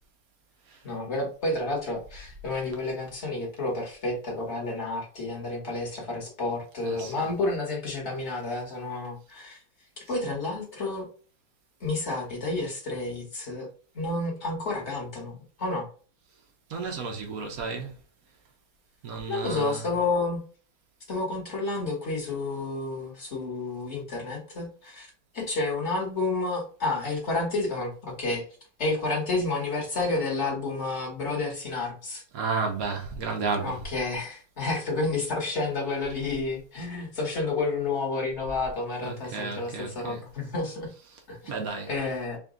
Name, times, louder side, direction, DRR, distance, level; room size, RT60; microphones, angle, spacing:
voice 1, 0.8-9.6 10.1-11.1 11.8-13.7 13.9-15.9 19.3-20.4 21.1-28.5 28.8-32.2 33.6-40.9 41.3-41.5 41.9-42.4, left 3 dB, 35° left, 1.4 m, -30 dB
voice 2, 6.8-7.3 16.7-17.9 19.0-19.9 32.3-33.8 39.0-40.2 41.1-41.2 41.5-41.9, right 4 dB, 60° right, 1.0 m, -32 dB
4.0 x 2.6 x 3.7 m
omnidirectional pair, 2.3 m